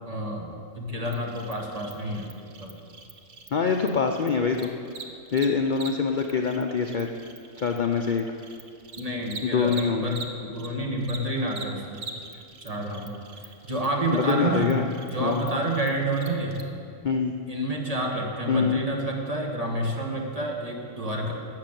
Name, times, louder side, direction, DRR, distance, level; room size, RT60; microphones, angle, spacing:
voice 1, 0.1-2.8 9.0-12.0 12.6-14.8 15.1-16.7 17.5-21.3, right 1 dB, 30° right, -1 dB, 1.8 m, -29 dB
Cricket, 1.0-10.7 11.0-16.6, right 4 dB, 50° right, 1.1 m, -43 dB
voice 2, 3.5-4.7 5.3-7.1 7.6-8.3 9.4-10.2 14.1-14.9 15.2-15.4 17.0-17.3 18.5-18.8, left 5 dB, 50° left, 3 dB, 0.6 m, -24 dB
13.5 x 6.6 x 9.0 m, 2.4 s
omnidirectional pair, 1.4 m